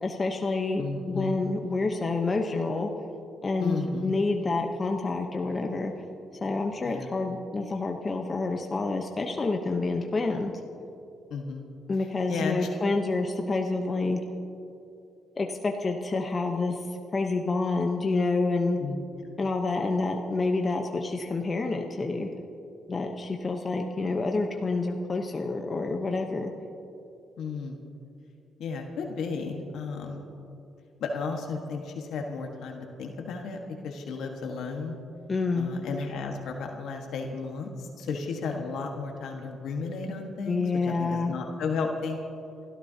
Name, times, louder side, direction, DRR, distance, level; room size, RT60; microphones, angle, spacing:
voice 1, 0.0-2.9 3.4-5.9 6.4-10.5 11.9-14.2 15.4-16.8 17.1-18.8 19.4-22.3 22.9-26.5 35.3-35.7 40.5-41.3, left 3 dB, 30° left, 2 dB, 0.9 m, -28 dB
voice 2, 0.8-1.4 3.6-4.2 6.8-7.1 11.3-11.6 12.3-12.8 18.8-19.0 27.4-27.8 28.6-30.2 31.0-33.6 33.8-35.0 35.6-42.2, left 4 dB, 75° left, 2 dB, 1.5 m, -33 dB
27.5 x 13.0 x 2.9 m, 2.7 s
cardioid pair, 90°, 0 cm